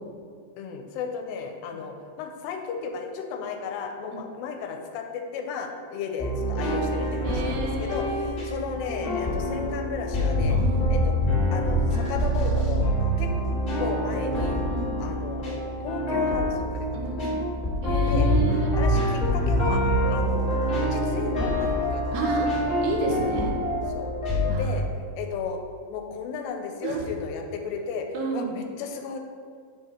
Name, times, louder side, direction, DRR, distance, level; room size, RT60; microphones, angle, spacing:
voice 1, 0.6-10.6 10.9-11.1 11.5-12.9 13.2-13.3 13.8-14.6 15.0-17.2 18.0-18.3 18.8-19.8 20.1-20.6 20.9-22.5 23.9-24.1 24.6-24.8 25.2-25.6 25.9-28.1 28.3-29.2, left 6 dB, 90° left, 4 dB, 2.7 m, -34 dB
sound 1, 6.2-24.5, equal, 40° left, 1.1 m, -25 dB
voice 2, 7.2-8.5 10.5-11.0 14.7-15.1 16.9-17.5 17.8-18.7 22.1-22.5 22.8-23.5 24.5-24.7 26.8-27.1 28.1-28.6, right 3 dB, 85° right, 0 dB, 3.1 m, -31 dB
7.8 x 4.8 x 4.4 m, 2.2 s
omnidirectional pair, 4.8 m